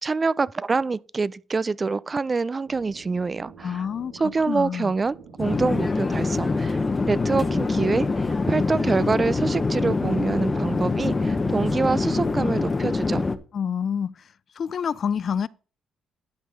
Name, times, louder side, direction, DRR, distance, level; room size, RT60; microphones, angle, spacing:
voice 1, 0.0-3.8 4.2-6.8 7.1-13.3, right 4 dB, 30° right, 0.3 m, -26 dB
sound 1, 2.6-12.4, right 4 dB, 85° right, 1.2 m, -45 dB
voice 2, 3.6-4.1 4.5-4.9 13.5-14.1 14.6-15.5, left 7 dB, 55° left, 0.3 m, -27 dB
Conversation / Chatter / Fixed-wing aircraft airplane, 5.4-13.4, left 3 dB, 25° left, 0.8 m, -24 dB
11.0 x 4.2 x 5.0 m
cardioid pair, 90°, 0 cm